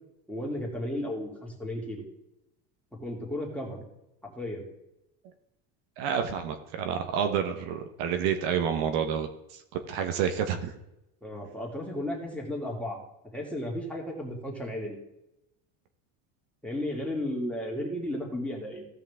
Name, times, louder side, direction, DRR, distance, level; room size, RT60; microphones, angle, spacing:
voice 1, 0.3-2.0 3.0-3.9 4.2-4.7 11.2-13.0 13.3-15.0 16.6-18.9, left 1 dB, 5° left, -2 dB, 2.6 m, -34 dB
voice 2, 6.0-9.6 9.9-10.7, right 8 dB, 65° right, 6 dB, 1.3 m, -29 dB
16.0 x 5.7 x 3.6 m, 0.89 s
supercardioid pair, 125°, 41 cm